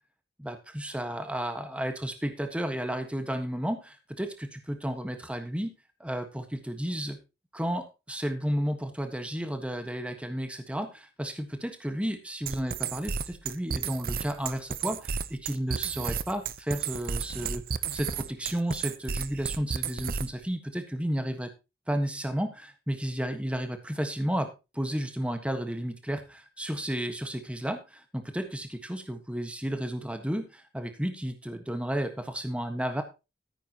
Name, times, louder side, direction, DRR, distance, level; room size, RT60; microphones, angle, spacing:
voice 1, 0.4-5.7 6.0-7.2 7.5-21.5 21.9-33.0, equal, 5° right, 6 dB, 1.5 m, -32 dB
sound 1, 12.5-20.4, right 6 dB, 55° right, 0.7 m, -32 dB
14.0 x 9.9 x 3.0 m, 0.27 s
head